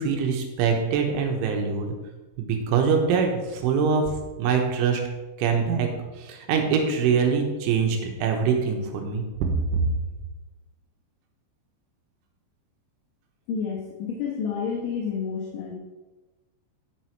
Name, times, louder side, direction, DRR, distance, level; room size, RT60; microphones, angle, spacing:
voice 1, 0.0-2.0 2.4-5.0 5.4-5.9 6.2-9.5, right 6 dB, 85° right, 3 dB, 3.6 m, -24 dB
voice 2, 13.5-15.7, left 6 dB, 80° left, -2 dB, 3.6 m, -29 dB
10.5 x 6.2 x 4.7 m, 1.2 s
omnidirectional pair, 5.5 m